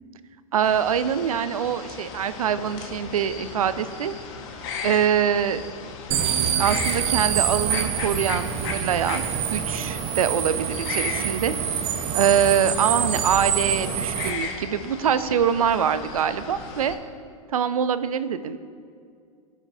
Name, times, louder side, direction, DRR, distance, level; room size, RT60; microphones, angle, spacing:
voice 1, 0.5-4.1 4.8-5.6 6.6-11.5 12.1-17.0 17.5-18.6, right 8 dB, 80° right, 13 dB, 0.5 m, -24 dB
sound 1, 0.6-17.0, left 5 dB, 50° left, 1.4 m, -36 dB
sound 2, 6.1-14.3, right 8 dB, 35° right, 0.7 m, -26 dB
19.0 x 6.4 x 2.7 m, 2.2 s
hypercardioid pair, 105°, 18 cm